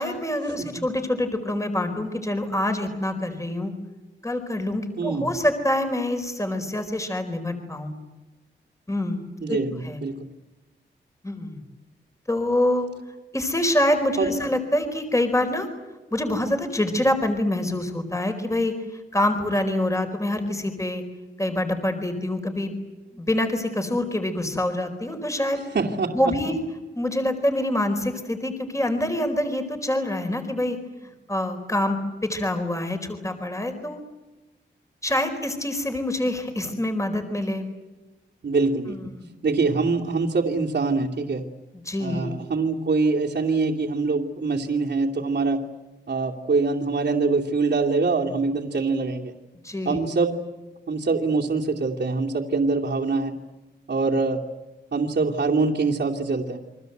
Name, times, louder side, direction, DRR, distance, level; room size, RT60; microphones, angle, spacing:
voice 1, 0.0-3.7 4.2-7.9 8.9-10.0 11.2-11.6 12.3-12.9 13.3-15.7 16.1-21.0 21.4-22.8 23.1-25.6 26.1-26.6 26.9-30.8 31.3-34.0 35.0-37.7 38.9-39.3 41.7-42.3 49.6-50.0, left 1 dB, 15° left, 7 dB, 4.5 m, -26 dB
voice 2, 5.0-5.3 9.4-10.3 14.2-14.3 25.7-26.3 38.4-39.0 39.4-41.4 42.0-45.6 46.1-49.3 49.8-50.3 50.9-53.3 53.9-54.4 54.9-56.6, right 4 dB, 65° right, -2 dB, 2.7 m, -24 dB
30.0 x 24.5 x 8.0 m, 1.1 s
wide cardioid pair, 100°, 19 cm